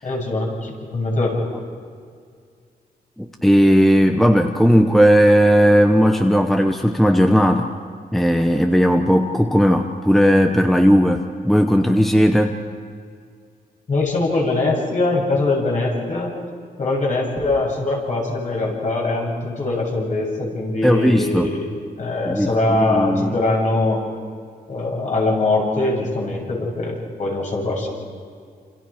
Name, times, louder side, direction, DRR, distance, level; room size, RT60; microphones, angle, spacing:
voice 1, 0.0-1.5 13.9-16.3 16.8-21.7 22.0-24.0 24.7-27.9, left 2 dB, 50° left, -2 dB, 7.4 m, -22 dB
voice 2, 3.2-7.7 8.1-12.6 20.8-21.5 22.3-23.4, equal, ahead, 4 dB, 1.0 m, -16 dB
29.0 x 28.5 x 5.1 m, 2.2 s
wide cardioid pair, 160°, 16 cm